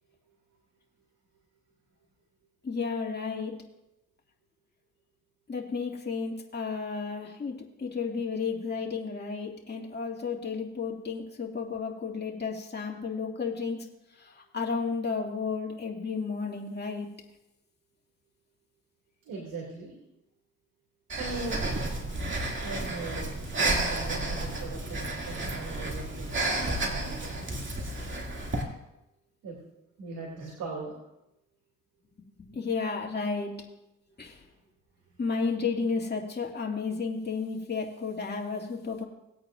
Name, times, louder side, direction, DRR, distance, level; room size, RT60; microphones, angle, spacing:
voice 1, 2.6-3.6 5.5-13.9 14.2-17.1 32.4-33.5 34.2-34.4 35.2-39.0, left 5 dB, 30° left, -1 dB, 2.3 m, -32 dB
voice 2, 19.2-20.0 21.2-21.7 22.6-27.5 29.4-29.6 30.0-31.0 35.1-35.2, right 3 dB, 90° right, -2 dB, 2.4 m, -39 dB
Breathing, 21.1-28.6, right 2 dB, 35° right, 2.4 m, -31 dB
19.0 x 8.6 x 2.5 m, 0.90 s
supercardioid pair, 60°, 32 cm